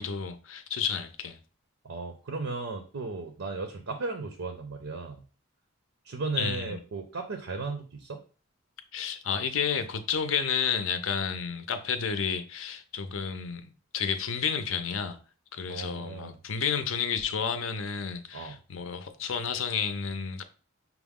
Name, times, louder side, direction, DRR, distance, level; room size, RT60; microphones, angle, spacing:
voice 1, 0.0-1.4 6.4-6.8 8.9-15.2 15.5-20.4, left 6 dB, 70° left, 0.5 m, -31 dB
voice 2, 1.8-5.2 6.0-8.2 15.7-16.4 18.3-18.6, right 3 dB, 70° right, 0.6 m, -35 dB
5.8 x 2.0 x 3.6 m
head